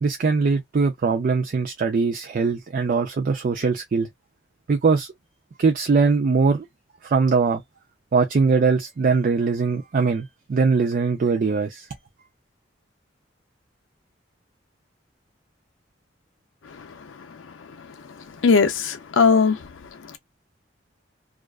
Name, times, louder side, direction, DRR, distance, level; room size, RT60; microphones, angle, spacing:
voice 1, 0.0-4.1 4.7-5.1 5.6-6.7 7.0-7.6 8.1-11.9, right 4 dB, 45° right, 0.4 m, -21 dB
voice 2, 18.4-19.6, left 5 dB, 85° left, 0.5 m, -18 dB
2.4 x 2.2 x 2.3 m
head